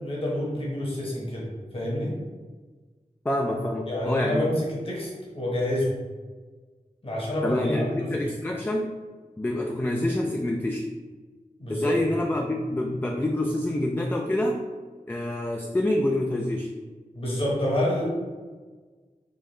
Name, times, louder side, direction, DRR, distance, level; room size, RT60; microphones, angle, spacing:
voice 1, 0.0-2.1 3.9-5.9 7.0-8.2 11.6-12.0 17.1-18.1, left 1 dB, 40° left, -5 dB, 1.1 m, -28 dB
voice 2, 3.2-4.4 7.4-8.9 9.4-10.8 11.7-14.6 15.1-16.7, left 1 dB, 15° left, 1 dB, 0.3 m, -26 dB
5.2 x 2.3 x 3.2 m, 1.4 s
wide cardioid pair, 70°, 15 cm